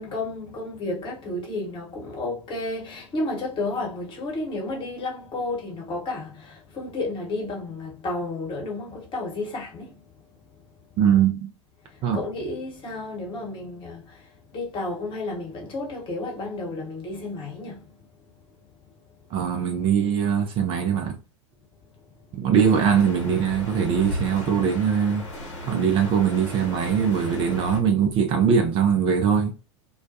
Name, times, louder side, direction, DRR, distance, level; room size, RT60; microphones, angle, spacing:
voice 1, 0.0-10.0 12.1-17.9, left 2 dB, 30° left, 1.1 m, -32 dB
voice 2, 11.0-11.5 12.0-12.2 19.3-21.2 22.4-25.2 25.7-29.5, right 7 dB, 35° right, 0.5 m, -21 dB
sound 1, 22.5-27.8, left 1 dB, 70° left, 0.8 m, -35 dB
2.3 x 2.2 x 2.6 m
figure-of-eight pair, 85°, 16 cm